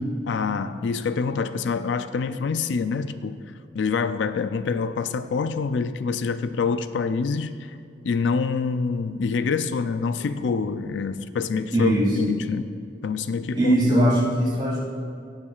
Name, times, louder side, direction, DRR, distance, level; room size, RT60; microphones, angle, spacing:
voice 1, 0.3-3.4 3.7-7.8 8.0-12.7 13.0-13.7, left 5 dB, 70° left, 11 dB, 0.4 m, -26 dB
voice 2, 11.7-12.3 13.5-14.8, equal, 25° right, -5 dB, 2.5 m, -20 dB
18.0 x 7.4 x 2.4 m, 2.4 s
head